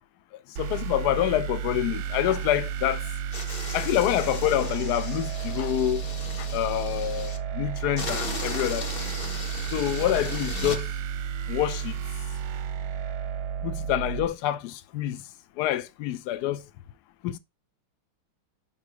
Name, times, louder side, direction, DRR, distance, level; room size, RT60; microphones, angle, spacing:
voice 1, 0.6-3.0 3.7-6.0 6.4-8.9 9.7-10.9 11.5-12.0 13.6-15.2 15.6-16.6 17.2-17.4, left 13 dB, 75° left, 0.9 m, -27 dB
sound 1, 0.6-14.3, right 8 dB, 70° right, 1.0 m, -32 dB
sound 2, 3.3-7.4 8.0-10.8, left 3 dB, 40° left, 0.9 m, -37 dB
5.6 x 3.8 x 4.7 m
omnidirectional pair, 2.2 m